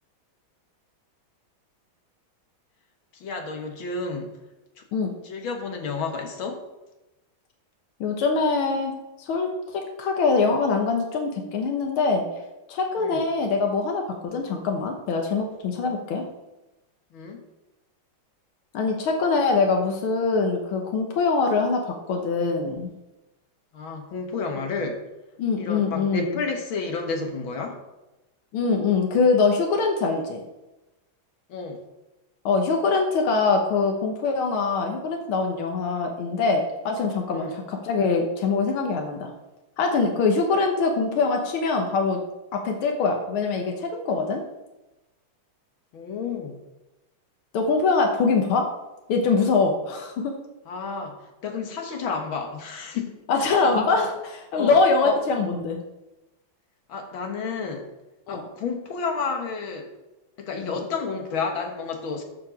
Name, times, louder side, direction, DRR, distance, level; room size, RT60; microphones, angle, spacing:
voice 1, 3.2-4.3 5.2-6.6 13.0-13.2 17.1-17.4 23.7-25.0 25.6-27.8 31.5-31.8 37.3-37.5 45.9-46.6 50.7-54.1 54.6-54.8 55.0-55.2 56.9-57.9 58.3-59.9 60.4-62.2, left 4 dB, 75° left, 4 dB, 2.2 m, -31 dB
voice 2, 8.0-8.9 9.2-12.3 12.7-16.2 18.7-22.9 25.4-26.4 28.5-30.4 32.5-39.3 39.8-42.2 42.5-44.4 47.5-48.6 49.1-50.3 53.3-54.0 54.5-55.8 58.3-58.4 60.6-60.8, left 4 dB, 90° left, 2 dB, 1.9 m, -23 dB
13.0 x 4.9 x 5.2 m, 1.0 s
omnidirectional pair, 2.2 m